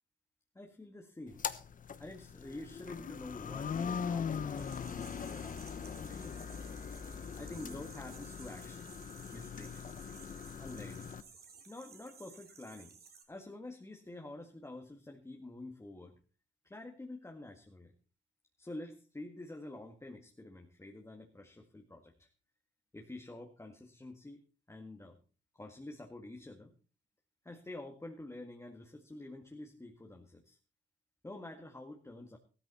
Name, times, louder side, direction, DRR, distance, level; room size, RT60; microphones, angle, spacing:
voice 1, 0.6-1.4 2.0-6.4 7.3-8.9 9.3-9.9 10.6-11.1 11.7-13.0 13.3-16.1 16.6-17.9 18.6-22.3 22.9-25.2 25.5-26.8 27.4-30.6 31.2-32.4, left 2 dB, 15° left, 2 dB, 1.9 m, -48 dB
sound 1, 1.3-11.2, left 7 dB, 40° left, 1.0 m, -41 dB
sound 2, 4.6-13.2, right 5 dB, 50° right, 3.1 m, -56 dB
14.5 x 13.0 x 4.2 m, 0.36 s
cardioid pair, 90°, 20 cm